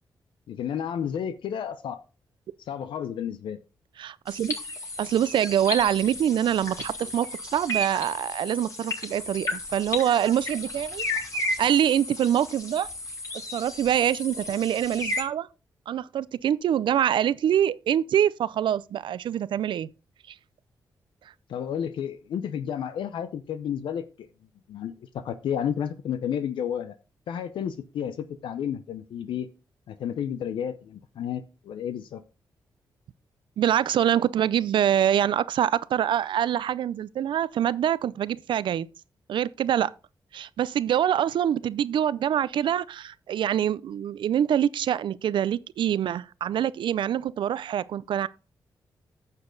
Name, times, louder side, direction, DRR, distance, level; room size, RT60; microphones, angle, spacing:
voice 1, 0.5-2.0 2.6-3.6 21.5-24.3 24.7-27.0 27.3-29.5 29.9-32.2, left 8 dB, 85° left, 0.7 m, -31 dB
voice 2, 4.0-4.5 5.0-7.3 7.5-11.0 11.6-12.9 13.5-15.5 15.9-19.9 33.6-38.9 39.3-39.9 40.3-48.3, right 10 dB, 75° right, 0.5 m, -25 dB
sound 1, 4.3-15.2, left 1 dB, 40° left, 3.8 m, -34 dB
9.7 x 6.9 x 3.9 m
cardioid pair, 55°, 8 cm